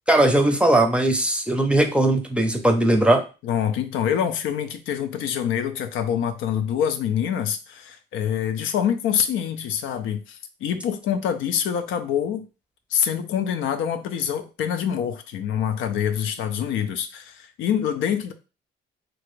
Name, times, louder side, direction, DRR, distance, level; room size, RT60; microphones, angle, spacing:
voice 1, 0.1-3.2, right 1 dB, 5° right, 5 dB, 0.6 m, -19 dB
voice 2, 3.4-12.4 12.9-18.3, left 9 dB, 80° left, 8 dB, 0.5 m, -25 dB
2.9 x 2.4 x 3.1 m, 0.32 s
cardioid pair, 90°, 20 cm